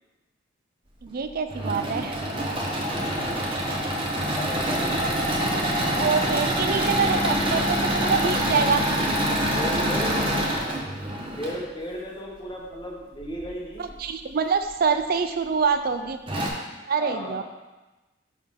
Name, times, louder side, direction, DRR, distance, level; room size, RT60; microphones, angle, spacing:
voice 1, 1.0-2.2 5.9-8.8 13.8-16.2 16.9-17.4, right 5 dB, 50° right, 9 dB, 0.4 m, -25 dB
Engine / Mechanisms, 1.3-11.6 13.2-13.9 14.5-14.6 14.9-15.0 15.9-16.0 16.3-16.5, equal, 25° right, 0.9 m, -26 dB
voice 2, 2.8-3.5 3.8-4.9 8.2-9.2 9.5-10.5 11.4-14.0 17.0-17.4, equal, 25° left, -1 dB, 1.0 m, -35 dB
6.2 x 5.9 x 3.6 m, 1.1 s
head